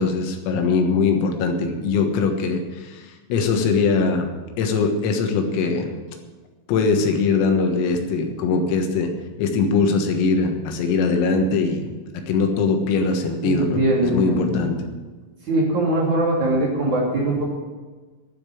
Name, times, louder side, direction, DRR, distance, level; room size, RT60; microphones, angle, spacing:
voice 1, 0.0-4.3 4.6-5.9 6.7-9.1 9.4-14.8, left 4 dB, 85° left, 4 dB, 4.1 m, -21 dB
voice 2, 13.4-14.6 15.5-17.4, right 1 dB, 40° right, -5 dB, 3.8 m, -21 dB
11.5 x 8.6 x 9.2 m, 1.3 s
omnidirectional pair, 5.9 m